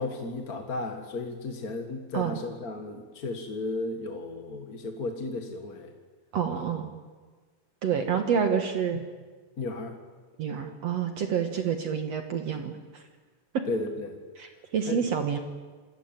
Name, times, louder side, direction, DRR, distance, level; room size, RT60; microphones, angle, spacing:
voice 1, 0.0-5.9 6.5-6.6 8.0-8.1 9.6-10.0 13.7-14.2 14.9-15.0, left 3 dB, 35° left, 5 dB, 1.6 m, -34 dB
voice 2, 6.3-6.9 7.8-9.0 10.4-13.0 13.5-13.6 14.4-15.4, right 7 dB, 55° right, 6 dB, 2.5 m, -28 dB
27.5 x 22.0 x 9.1 m, 1.4 s
omnidirectional pair, 3.8 m